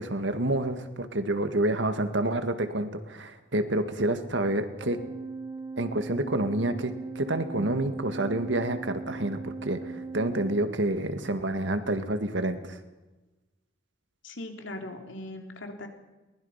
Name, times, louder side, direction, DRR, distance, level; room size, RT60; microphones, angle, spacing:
voice 1, 0.0-5.0 5.8-12.8, right 1 dB, 80° right, 9 dB, 1.9 m, -28 dB
Organ, 4.8-11.3, right 4 dB, 20° right, 2.0 m, -39 dB
voice 2, 14.2-15.9, left 1 dB, 90° left, 4 dB, 3.1 m, -39 dB
22.5 x 20.0 x 5.8 m, 1.1 s
head